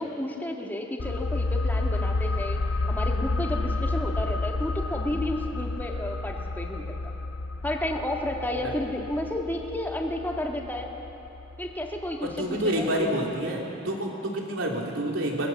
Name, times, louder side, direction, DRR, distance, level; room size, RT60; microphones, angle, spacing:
voice 1, 0.0-2.6 2.9-6.8 7.6-10.9 11.6-12.9, left 1 dB, 10° left, 1 dB, 1.8 m, -31 dB
sound 1, 1.0-12.4 12.7-12.8, left 2 dB, 85° left, 0.6 m, -30 dB
voice 2, 12.2-15.5, right 1 dB, 90° right, -1 dB, 3.4 m, -28 dB
23.5 x 19.0 x 7.2 m, 3.0 s
head